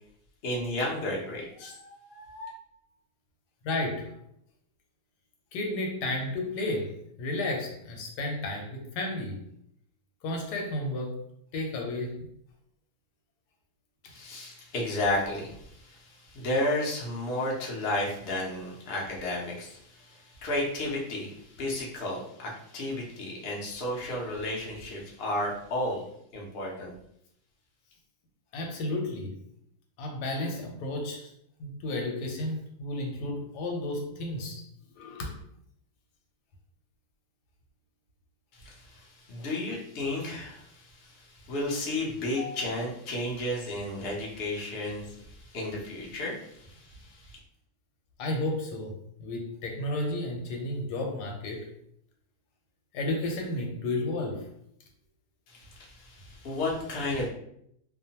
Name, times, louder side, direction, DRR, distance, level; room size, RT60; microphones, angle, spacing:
voice 1, 0.4-2.5 14.0-26.0 26.3-26.9 38.5-47.4 55.5-57.3, left 1 dB, 55° left, -3 dB, 0.7 m, -33 dB
voice 2, 3.6-4.2 5.5-9.4 10.2-11.2 11.5-12.3 28.5-29.3 30.0-31.3 31.6-34.6 35.0-35.4 39.3-39.5 42.3-42.7 48.2-51.7 52.9-54.5, left 2 dB, 85° left, 1 dB, 1.2 m, -32 dB
2.8 x 2.1 x 2.8 m, 0.72 s
omnidirectional pair, 1.7 m